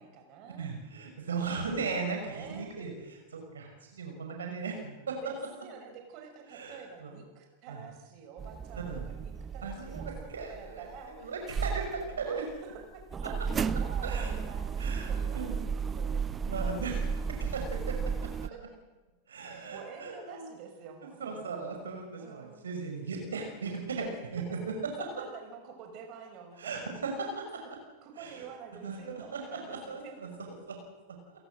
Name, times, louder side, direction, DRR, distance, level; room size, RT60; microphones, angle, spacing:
voice 1, 0.0-0.7 2.1-2.7 5.1-11.3 12.1-13.4 13.7-16.6 18.5-18.6 19.6-21.6 22.2-22.6 24.4-24.5 25.0-26.9 27.6-27.7 28.0-30.6, right 6 dB, 45° right, 4 dB, 5.6 m, -48 dB
voice 2, 0.6-5.2 6.5-7.1 7.7-7.8 8.9-9.0 9.6-10.9 11.2-12.4 14.0-14.3 14.8-15.6 16.5-17.0 17.4-18.5 19.3-20.5 21.2-24.9 26.6-27.4 28.2-28.4 28.8-29.0 29.3-30.8, right 4 dB, 75° right, 3 dB, 6.0 m, -37 dB
sound 1, 8.4-11.2 11.5-18.5, right 6 dB, 20° right, 0.8 m, -34 dB
29.5 x 17.0 x 7.8 m, 1.1 s
figure-of-eight pair, 95°, 0 cm